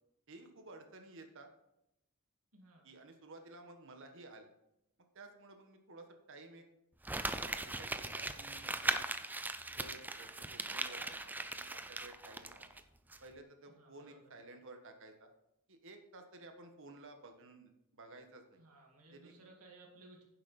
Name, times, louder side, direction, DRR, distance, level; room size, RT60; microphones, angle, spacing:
voice 1, 0.3-1.5 2.8-4.5 5.1-6.6 7.4-9.1 9.7-12.8 13.2-15.3 15.7-18.6 19.1-19.3, right 2 dB, 60° right, 5 dB, 1.4 m, -54 dB
voice 2, 2.5-2.9 13.7-14.2 18.6-20.2, right 2 dB, 85° right, 0 dB, 2.5 m, -59 dB
Crumpling crinkling, 7.0-12.8 13.1-13.2, right 2 dB, 10° right, 0.4 m, -39 dB
10.0 x 7.4 x 4.2 m, 0.84 s
head